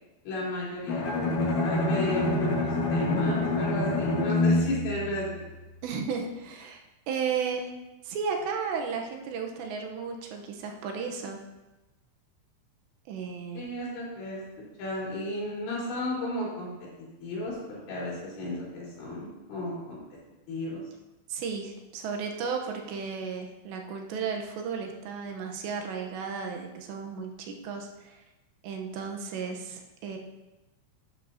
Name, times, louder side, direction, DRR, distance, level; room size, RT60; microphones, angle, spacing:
voice 1, 0.2-5.4 13.5-14.4 14.8-16.7 17.2-20.0 20.5-20.8, left 1 dB, 80° left, -7 dB, 6.2 m, -34 dB
Bowed string instrument, 0.9-5.9, left 2 dB, 55° left, 2.5 m, -27 dB
voice 2, 5.8-6.8 7.1-7.7 8.0-11.4 13.1-13.6 21.3-28.2 28.6-30.2, right 6 dB, 75° right, 2 dB, 3.0 m, -34 dB
11.5 x 11.5 x 2.8 m, 1.1 s
omnidirectional pair, 5.3 m